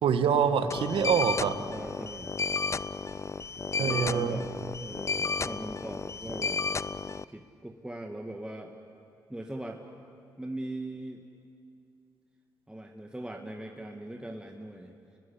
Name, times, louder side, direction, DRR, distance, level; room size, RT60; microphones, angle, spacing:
voice 1, 0.0-1.5 3.8-4.4, right 7 dB, 70° right, 9 dB, 1.5 m, -25 dB
sound 1, 0.7-7.2, left 4 dB, 30° left, 0.5 m, -33 dB
voice 2, 1.5-2.3 3.8-6.6 7.3-8.7 9.3-9.8 10.4-11.2 12.7-14.9, right 1 dB, 10° right, 2 dB, 2.1 m, -40 dB
29.5 x 20.5 x 8.5 m, 2.5 s
hypercardioid pair, 45°, 9 cm